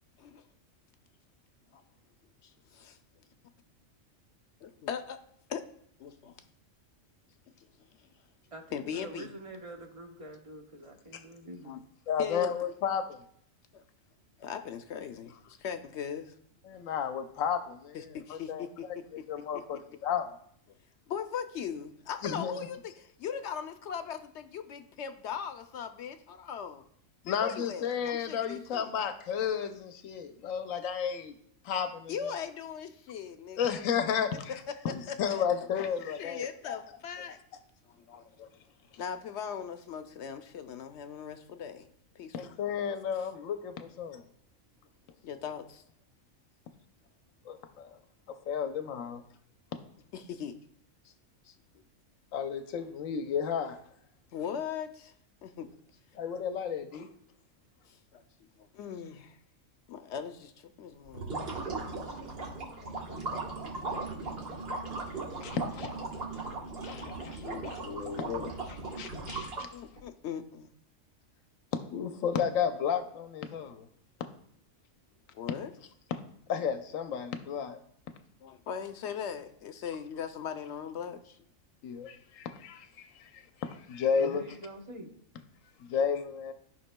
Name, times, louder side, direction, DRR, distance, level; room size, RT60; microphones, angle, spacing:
voice 1, 2.4-3.0 4.6-5.2 5.5-5.7 6.0-6.4 7.5-8.1 8.7-9.3 11.6-11.8 12.2-12.5 13.7-13.8 14.4-16.3 17.9-18.9 19.2-19.3 19.7-19.8 20.7-20.8 21.1-26.8 27.3-28.9 32.1-33.8 34.9-35.4 36.2-37.4 37.9-38.2 39.0-41.9 42.1-42.3 45.2-45.8 50.1-50.6 51.0-51.1 51.4-51.8 54.3-55.1 55.4-55.7 57.9-58.2 58.6-59.4 59.9-61.6 62.0-62.2 69.7-70.7 75.3-75.7 78.4-81.4, left 7 dB, 65° left, 8 dB, 0.8 m, -39 dB
voice 2, 8.5-11.8 84.2-85.1, right 1 dB, 30° right, 1 dB, 0.9 m, -45 dB
voice 3, 12.1-13.2 16.6-18.6 19.1-20.3 22.2-22.7 27.2-31.3 31.6-32.4 33.6-34.6 34.8-36.8 38.1-38.5 42.3-44.2 47.4-48.0 48.3-49.2 52.3-53.8 56.1-57.1 62.7-63.2 65.1-66.1 66.8-69.7 71.7-73.9 76.5-77.8 81.8-84.4 85.8-86.5, left 7 dB, 90° left, 7 dB, 1.0 m, -33 dB
sound 1, 61.1-70.0, right 3 dB, 50° right, 1.5 m, -38 dB
14.0 x 5.4 x 2.2 m, 0.66 s
omnidirectional pair, 1.3 m